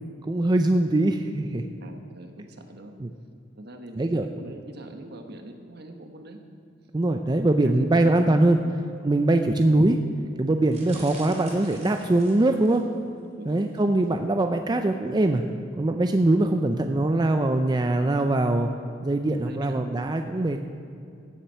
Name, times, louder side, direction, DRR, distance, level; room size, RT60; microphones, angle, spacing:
voice 1, 0.2-1.6 3.0-3.1 4.0-4.3 6.9-8.6 9.0-10.0 10.4-12.8 13.5-15.4 15.8-18.7 19.0-20.6, right 2 dB, 20° right, 6 dB, 0.5 m, -22 dB
voice 2, 1.8-2.9 3.6-6.4 7.4-8.7 10.9-11.0 13.4-13.7 19.5-19.9, right 1 dB, 60° right, 5 dB, 1.3 m, -43 dB
sound 1, 10.7-13.0 13.5-13.8 14.0-14.1, right 3 dB, 40° right, 3.3 m, -46 dB
16.0 x 7.4 x 5.7 m, 2.6 s
head